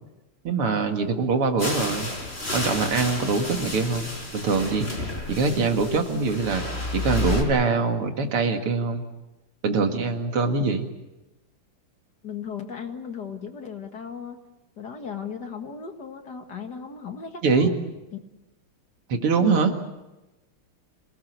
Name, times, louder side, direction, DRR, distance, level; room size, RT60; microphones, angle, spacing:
voice 1, 0.4-2.1 2.5-4.9 5.3-6.6 6.9-9.0 9.6-10.9 17.4-17.7 19.1-19.7, right 4 dB, 85° right, 5 dB, 2.9 m, -23 dB
sound 1, 1.6-7.4, left 2 dB, 30° left, 4.9 m, -31 dB
voice 2, 12.2-14.4 14.8-17.7 18.1-18.2 19.3-19.7, left 6 dB, 50° left, 5 dB, 2.3 m, -36 dB
26.5 x 18.5 x 8.1 m, 1.0 s
omnidirectional pair, 2.4 m